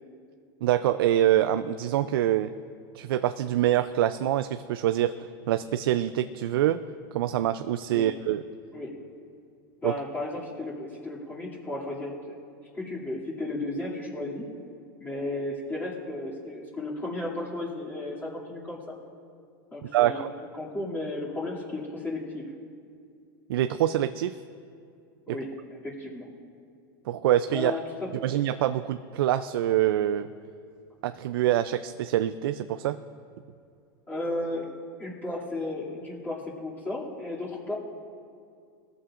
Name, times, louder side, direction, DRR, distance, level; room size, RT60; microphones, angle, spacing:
voice 1, 0.6-2.5 2.9-6.8 7.1-8.4 9.8-9.9 19.9-20.3 23.5-24.3 25.3-25.4 27.1-27.7 28.2-30.3 31.0-33.0, right 12 dB, 75° right, 11 dB, 0.4 m, -25 dB
voice 2, 9.8-12.3 12.7-14.5 15.0-18.8 19.7-20.3 20.6-22.5 25.3-25.5 25.8-26.3 27.5-28.4 34.1-34.7 35.0-37.8, left 2 dB, 15° left, -7 dB, 2.6 m, -34 dB
20.0 x 14.0 x 2.5 m, 2.3 s
supercardioid pair, 120°, 12 cm